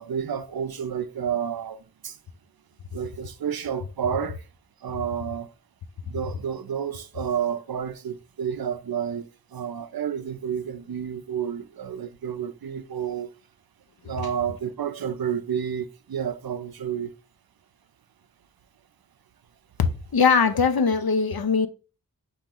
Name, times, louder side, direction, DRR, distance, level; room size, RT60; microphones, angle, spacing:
voice 1, 0.0-1.8 2.0-2.2 2.9-4.4 4.8-5.5 6.0-13.3 14.0-17.1, right 8 dB, 80° right, 0.5 m, -30 dB
voice 2, 19.8-21.7, left 5 dB, 80° left, 0.6 m, -21 dB
4.6 x 2.9 x 3.7 m
wide cardioid pair, 45°, 36 cm